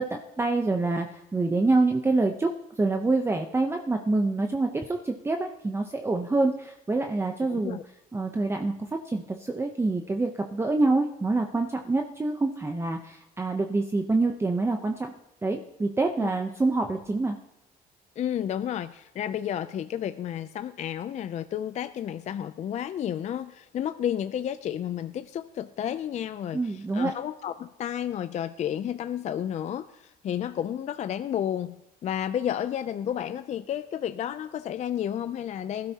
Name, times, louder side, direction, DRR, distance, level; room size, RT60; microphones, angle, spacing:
voice 1, 0.0-2.5 2.8-7.8 8.1-15.1 15.4-17.4 26.5-27.1, right 3 dB, 15° right, 4 dB, 0.8 m, -26 dB
voice 2, 7.5-7.8 16.2-16.3 18.2-35.9, left 10 dB, 45° left, 11 dB, 0.4 m, -31 dB
19.5 x 12.5 x 2.9 m, 0.87 s
cardioid pair, 110°, 17 cm